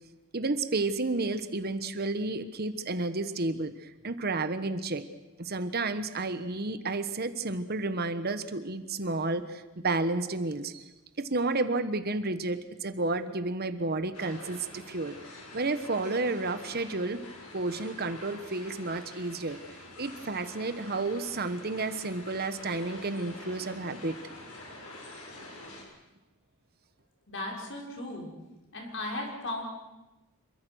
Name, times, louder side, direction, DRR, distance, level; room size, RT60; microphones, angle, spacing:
voice 1, 0.3-5.0 5.4-10.9 11.2-15.1 15.5-17.2 17.5-19.6 20.0-24.2, right 3 dB, 45° right, 11 dB, 1.2 m, -31 dB
sound 1, 14.1-25.8, left 2 dB, 90° left, 6.6 m, -47 dB
voice 2, 27.3-28.3 28.7-29.6, left 1 dB, 55° left, 0 dB, 6.2 m, -36 dB
27.0 x 23.5 x 6.4 m, 1.0 s
head